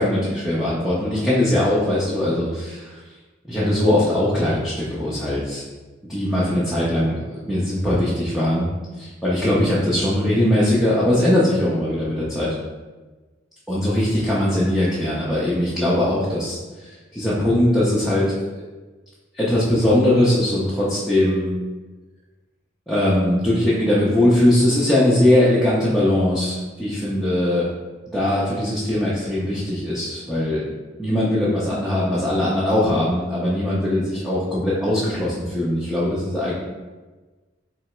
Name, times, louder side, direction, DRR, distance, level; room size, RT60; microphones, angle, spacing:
voice 1, 0.0-3.0 3.4-5.6 6.1-8.7 9.0-12.6 13.7-18.3 19.3-21.5 22.9-27.7 28.1-30.6 31.0-36.5, left 1 dB, ahead, -9 dB, 0.6 m, -20 dB
3.3 x 2.9 x 4.3 m, 1.3 s
head